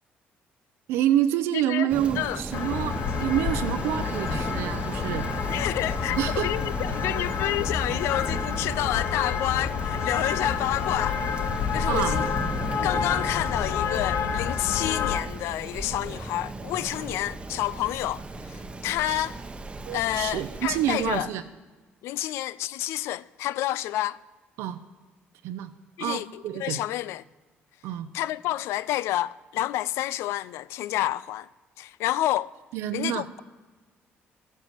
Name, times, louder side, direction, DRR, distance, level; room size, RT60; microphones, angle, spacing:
voice 1, 0.9-5.3 6.2-6.5 11.9-12.2 19.1-19.3 19.9-21.4 22.2-22.3 24.6-24.8 25.4-25.7 26.0-26.8 27.8-28.1 32.7-33.3, right 11 dB, 85° right, 0.6 m, -27 dB
voice 2, 1.5-1.9 2.1-2.4 5.5-11.2 11.7-12.2 12.8-19.4 19.9-21.3 22.0-24.2 26.0-27.2 28.1-31.5 31.8-32.5 32.9-33.4, left 14 dB, 85° left, 0.3 m, -29 dB
Rain, 1.9-21.2, right 2 dB, 25° right, 0.9 m, -36 dB
sound 1, 2.5-15.2, left 7 dB, 65° left, 0.8 m, -29 dB
13.0 x 7.4 x 8.0 m
cardioid pair, 85°, 4 cm